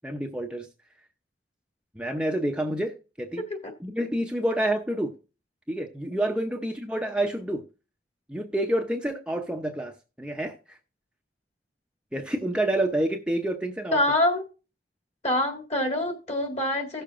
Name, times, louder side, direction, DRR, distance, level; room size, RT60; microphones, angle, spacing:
voice 1, 0.0-0.7 2.0-3.4 3.8-5.1 5.7-7.6 8.3-10.8 12.1-14.0, right 1 dB, 5° right, 0.6 m, -28 dB
voice 2, 13.9-14.4 15.2-17.0, left 1 dB, 40° left, 1.9 m, -25 dB
17.0 x 6.7 x 2.5 m
head